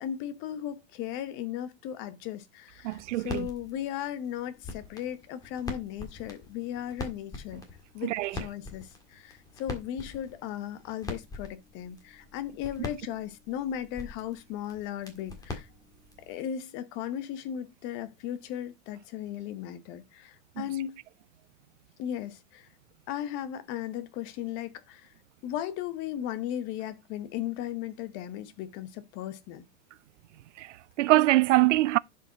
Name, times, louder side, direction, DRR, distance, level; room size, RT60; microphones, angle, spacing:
voice 1, 0.0-7.7 7.9-15.7 16.2-21.0 22.0-22.7 23.1-25.1 25.4-29.7, left 10 dB, 30° left, 0.9 m, -36 dB
voice 2, 2.8-3.5 8.0-8.4 20.6-20.7 30.6-32.0, right 17 dB, 70° right, 0.5 m, -24 dB
sound 1, 2.9-16.3, left 3 dB, 10° left, 1.8 m, -43 dB
10.5 x 5.3 x 3.9 m
supercardioid pair, 155°, 38 cm